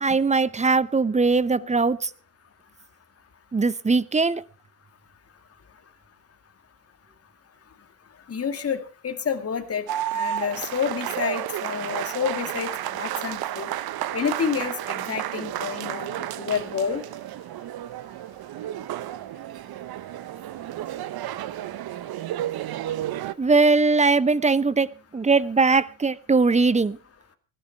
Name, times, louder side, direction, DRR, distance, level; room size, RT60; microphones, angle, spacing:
voice 1, 0.0-2.1 3.5-4.4 23.4-24.9 25.1-27.0, right 4 dB, 15° right, 0.7 m, -20 dB
voice 2, 8.3-9.9 10.1-13.7 14.1-17.0, left 6 dB, 30° left, 2.2 m, -29 dB
sound 1, 9.9-23.3, right 12 dB, 55° right, 1.0 m, -32 dB
19.5 x 12.5 x 4.4 m
supercardioid pair, 75°, 44 cm